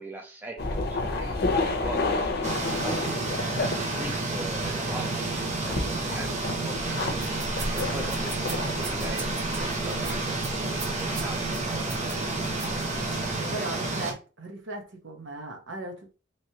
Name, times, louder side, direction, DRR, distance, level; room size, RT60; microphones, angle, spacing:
voice 1, 0.0-7.4 7.7-11.9 12.4-12.8 13.4-13.7, right 1 dB, 10° right, 0.5 m, -42 dB
sound 1, 0.6-5.0 5.3-9.2, left 3 dB, 55° left, 0.7 m, -30 dB
sound 2, 2.4-14.1, right 2 dB, 40° right, 0.8 m, -30 dB
sound 3, 7.1-13.4, right 1 dB, 85° right, 1.9 m, -39 dB
voice 2, 12.7-13.0 13.5-16.1, right 2 dB, 65° right, 0.9 m, -38 dB
3.1 x 3.0 x 2.8 m
head